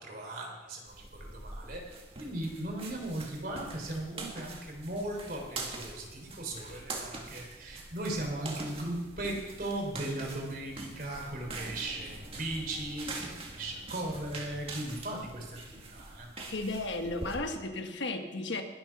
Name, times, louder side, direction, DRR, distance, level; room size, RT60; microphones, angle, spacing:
voice 1, 0.0-16.3, right 1 dB, 50° right, 1 dB, 3.5 m, -38 dB
sound 1, 0.9-17.4, right 2 dB, 30° right, 2.0 m, -44 dB
voice 2, 16.4-18.6, left 2 dB, 75° left, 6 dB, 1.4 m, -34 dB
21.0 x 7.5 x 5.9 m, 1.3 s
head